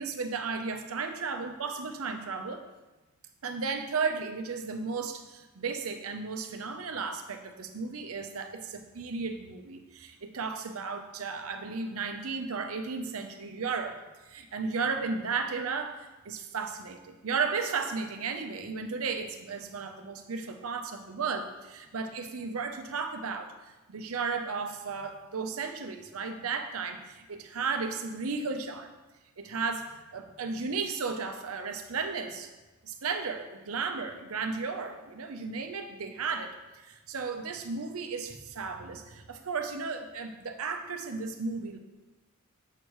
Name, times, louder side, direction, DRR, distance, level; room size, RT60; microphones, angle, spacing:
voice 1, 0.0-2.6 3.4-14.0 14.3-23.5 23.9-28.9 29.4-32.5 32.8-36.5 36.8-41.8, right 4 dB, 70° right, 6 dB, 0.7 m, -34 dB
7.6 x 6.3 x 3.1 m, 1.1 s
head